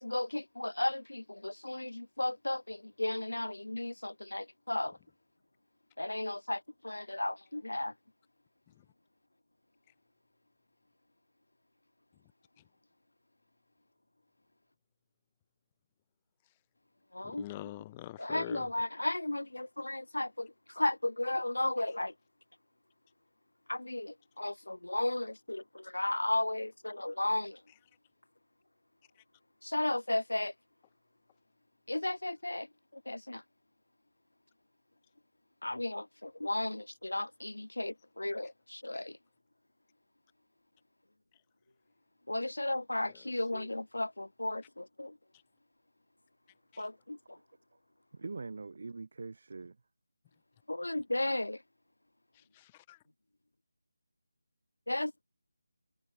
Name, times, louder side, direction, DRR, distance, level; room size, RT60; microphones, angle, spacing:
voice 1, 0.0-5.0 6.0-7.9 17.1-17.4 18.2-22.1 23.7-27.6 29.6-30.5 31.9-32.7 32.9-33.4 35.6-39.2 42.3-45.2 46.8-47.4 50.7-51.6 54.9-55.2, left 1 dB, 80° left, 2.5 m, -34 dB
voice 2, 17.2-18.7 43.0-43.7 46.7-46.9 52.3-53.0, left 16 dB, 20° left, 0.8 m, -46 dB
voice 3, 48.1-49.8, right 3 dB, 55° right, 2.0 m, -43 dB
figure-of-eight pair, 160°, 0 cm